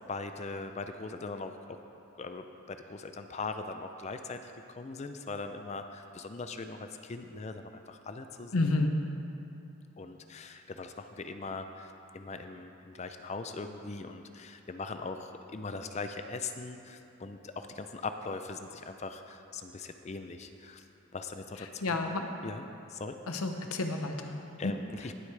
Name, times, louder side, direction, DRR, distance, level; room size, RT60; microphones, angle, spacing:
voice 1, 0.0-1.8 2.1-8.8 10.0-20.9 21.1-22.0 22.4-22.6 22.9-23.2 24.6-25.1, left 3 dB, 30° left, 7 dB, 0.4 m, -40 dB
voice 2, 8.5-8.9 21.8-22.3 23.3-24.7, left 2 dB, 80° left, 5 dB, 0.9 m, -30 dB
18.0 x 8.1 x 3.3 m, 2.8 s
head